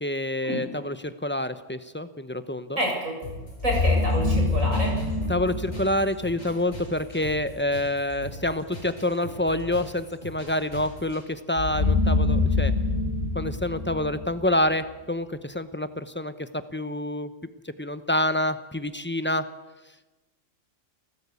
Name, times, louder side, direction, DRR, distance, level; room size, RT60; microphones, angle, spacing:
voice 1, 0.0-2.8 5.3-12.7 13.3-17.3 17.8-19.4, left 1 dB, 10° left, 12 dB, 0.8 m, -27 dB
voice 2, 2.8-3.1 3.6-4.9, equal, 80° right, 0 dB, 7.7 m, -28 dB
sound 1, 3.2-11.2, left 1 dB, 30° left, 6.8 m, -41 dB
sound 2, 3.6-6.6 11.6-14.8, left 3 dB, 55° left, 5.4 m, -25 dB
28.5 x 14.0 x 8.4 m, 1.1 s
omnidirectional pair, 1.3 m